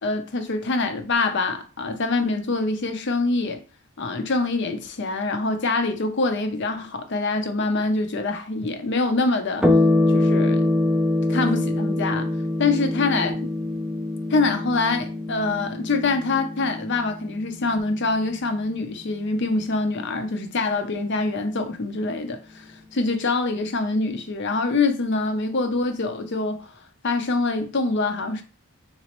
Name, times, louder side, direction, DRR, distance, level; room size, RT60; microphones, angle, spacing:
voice 1, 0.0-3.6 4.0-9.7 10.1-10.7 11.3-12.3 12.6-13.4 14.3-26.7 27.0-28.4, left 3 dB, 50° left, 0.6 m, -25 dB
sound 1, 9.6-18.5, left 2 dB, 5° right, 0.4 m, -24 dB
4.0 x 3.0 x 2.9 m
head